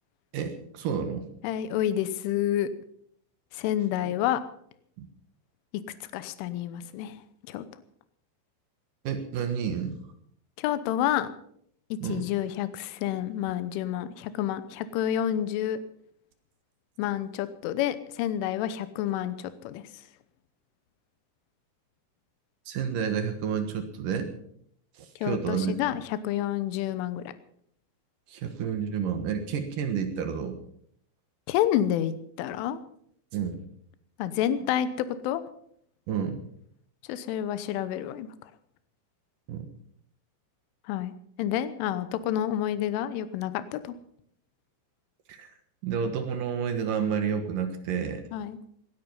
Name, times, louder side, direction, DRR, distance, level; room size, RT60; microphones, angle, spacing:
voice 1, 0.3-1.3 4.0-4.1 5.0-5.1 9.0-10.0 12.0-12.3 22.7-24.3 25.0-25.7 28.3-30.6 33.3-33.6 36.1-36.4 39.5-39.7 45.3-45.5 45.8-48.2, right 7 dB, 65° right, 7 dB, 2.2 m, -30 dB
voice 2, 1.4-2.7 3.5-4.4 6.1-7.2 7.5-7.7 10.6-11.3 11.9-15.8 17.0-19.8 25.2-27.2 31.5-32.8 34.2-35.4 37.1-38.3 40.9-41.1 41.4-44.0 48.3-48.6, left 11 dB, 85° left, 13 dB, 3.4 m, -29 dB
19.0 x 11.5 x 5.5 m, 0.67 s
omnidirectional pair, 5.6 m